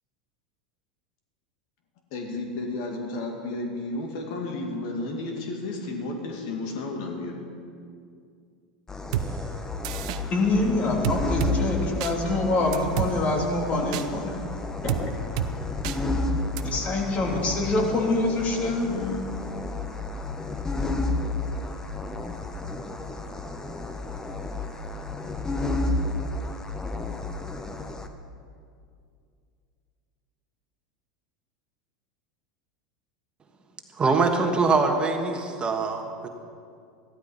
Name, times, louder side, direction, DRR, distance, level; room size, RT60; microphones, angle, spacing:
voice 1, 2.1-7.4 18.8-19.2, left 2 dB, 60° left, 2 dB, 2.2 m, -32 dB
sound 1, 8.9-28.1, left 2 dB, 15° left, 1.1 m, -31 dB
sound 2, 9.1-9.3 9.8-10.2 11.0-11.5 12.0-12.1 12.7-13.1 13.9-14.1 14.9-15.0 15.4-15.5 15.8-16.0 16.6-16.7, right 11 dB, 65° right, 0.8 m, -27 dB
voice 2, 10.3-14.3 14.8-15.1 16.6-18.9, left 2 dB, 35° left, 0 dB, 3.0 m, -25 dB
voice 3, 34.0-36.3, right 4 dB, 25° right, 4 dB, 1.5 m, -23 dB
14.5 x 12.5 x 5.6 m, 2.3 s
hypercardioid pair, 90°, 4 cm